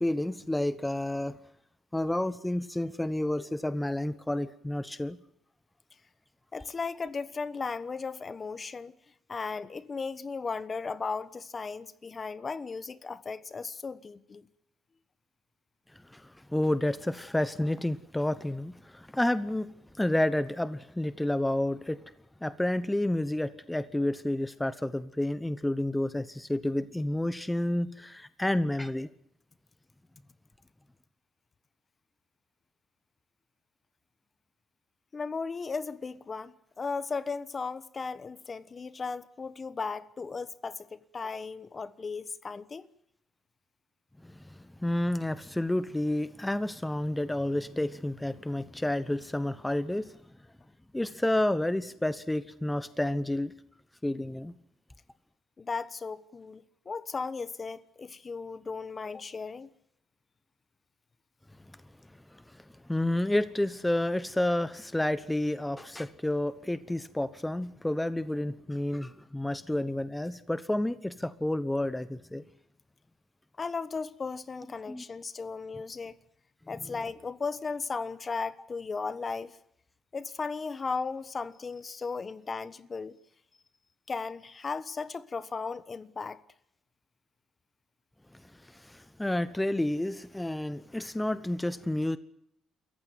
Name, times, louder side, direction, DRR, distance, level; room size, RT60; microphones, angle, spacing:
voice 1, 0.0-1.4 1.9-5.2 16.1-22.0 22.4-29.1 44.2-50.2 50.9-53.5 54.0-54.5 62.3-72.4 74.9-75.0 88.3-92.2, left 1 dB, 10° left, 0.9 m, -30 dB
voice 2, 6.5-8.9 9.3-14.5 35.1-42.9 55.6-59.7 73.6-76.1 76.7-79.6 80.1-83.2 84.1-86.4, left 4 dB, 35° left, 1.2 m, -36 dB
27.5 x 15.0 x 9.4 m
cardioid pair, 90°, 0 cm